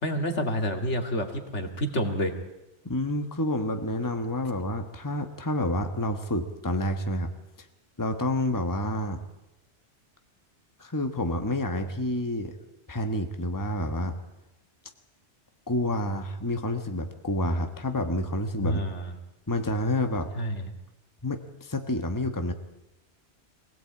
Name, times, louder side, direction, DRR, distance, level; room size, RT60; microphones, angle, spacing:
voice 1, 0.0-2.3 18.6-19.1 20.4-20.7, equal, 75° left, 5 dB, 2.5 m, -28 dB
voice 2, 2.8-7.3 8.0-9.2 10.8-12.5 12.9-14.1 15.7-18.8 19.5-20.3 21.2-22.5, left 1 dB, 15° left, 6 dB, 1.4 m, -29 dB
23.5 x 17.5 x 8.6 m, 0.93 s
omnidirectional pair, 1.2 m